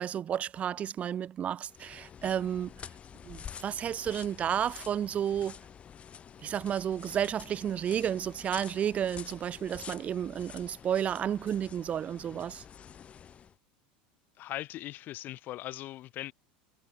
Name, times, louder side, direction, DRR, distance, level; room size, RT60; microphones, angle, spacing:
voice 1, 0.0-2.7 3.2-5.6 6.4-12.6, right 9 dB, 30° right, 0.8 m, -32 dB
sound 1, 1.6-13.6, left 8 dB, 30° left, 3.5 m, -48 dB
voice 2, 14.4-16.3, left 15 dB, 45° left, 1.1 m, -40 dB
supercardioid pair, 125°, 4 cm